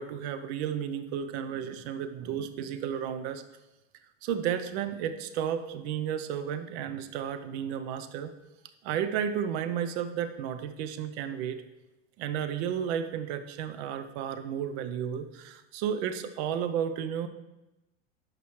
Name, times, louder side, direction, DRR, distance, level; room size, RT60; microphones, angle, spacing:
voice 1, 0.0-3.4 4.2-8.3 8.8-11.6 12.2-17.3, right 8 dB, 60° right, 9 dB, 0.8 m, -32 dB
12.5 x 5.0 x 3.2 m, 1.0 s
hypercardioid pair, 95°, 38 cm